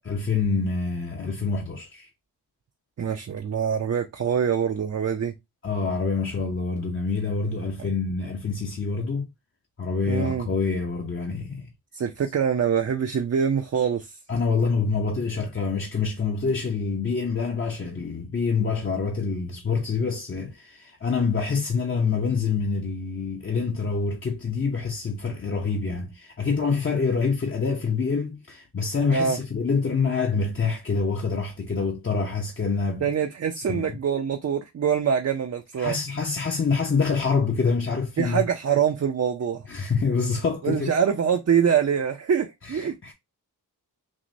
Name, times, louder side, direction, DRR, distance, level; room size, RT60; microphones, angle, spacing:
voice 1, 0.0-2.1 5.6-9.3 9.8-11.7 14.3-33.1 33.6-33.9 35.8-38.4 39.7-40.9 42.6-43.1, left 4 dB, 30° left, 0.6 m, -26 dB
voice 2, 3.0-5.3 7.8-7.9 10.1-10.5 11.9-14.2 29.1-29.4 33.0-36.0 38.2-39.6 40.6-43.0, right 7 dB, 40° right, 0.4 m, -24 dB
5.9 x 2.1 x 2.6 m
wide cardioid pair, 115°, 40 cm